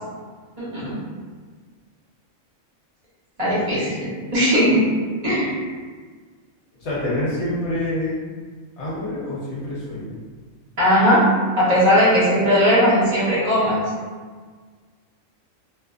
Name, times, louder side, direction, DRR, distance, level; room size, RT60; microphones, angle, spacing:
voice 1, 0.6-0.9 3.4-4.8 5.2-5.6 10.8-11.2 11.6-13.8, equal, 30° right, -10 dB, 1.0 m, -18 dB
voice 2, 6.8-8.3 8.8-10.2, left 1 dB, 65° left, -7 dB, 0.9 m, -26 dB
2.4 x 2.4 x 2.3 m, 1.6 s
omnidirectional pair, 1.4 m